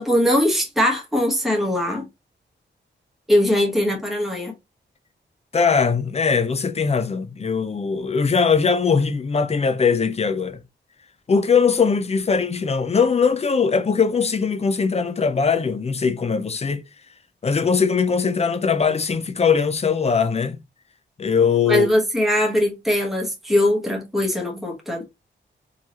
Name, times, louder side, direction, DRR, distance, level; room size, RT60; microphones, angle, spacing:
voice 1, 0.0-2.1 3.3-4.5 21.7-25.0, left 1 dB, ahead, 1.1 m, -21 dB
voice 2, 5.5-10.6 11.3-16.8 17.4-20.6 21.2-21.9, left 5 dB, 30° left, 0.6 m, -20 dB
4.6 x 2.9 x 2.9 m
wide cardioid pair, 175°, 20 cm